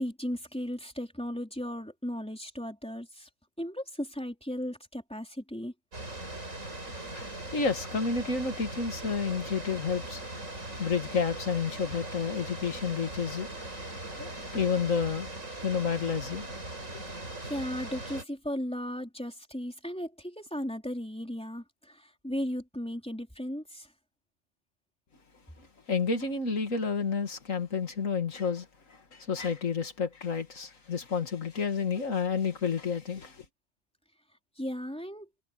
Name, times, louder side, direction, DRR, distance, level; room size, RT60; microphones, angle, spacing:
voice 1, 0.0-3.3 3.6-5.7 17.1-23.9 34.6-35.3, equal, 5° left, 3.7 m, -36 dB
sound 1, 5.9-18.2, right 2 dB, 80° right, 6.5 m, -40 dB
voice 2, 7.1-10.2 10.8-15.4 15.6-16.5 16.9-17.0 25.6-33.4, left 5 dB, 85° left, 2.5 m, -31 dB
omnidirectional pair, 1.3 m